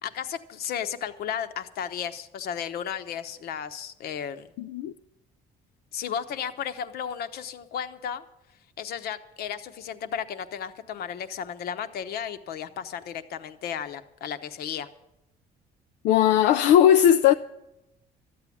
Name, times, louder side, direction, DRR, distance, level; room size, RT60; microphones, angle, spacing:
voice 1, 0.0-4.5 5.9-8.2 8.8-14.9, left 8 dB, 65° left, 0.9 m, -34 dB
voice 2, 4.6-4.9 16.0-17.3, left 10 dB, 85° left, 0.4 m, -18 dB
13.0 x 8.6 x 8.4 m
cardioid pair, 110°, 17 cm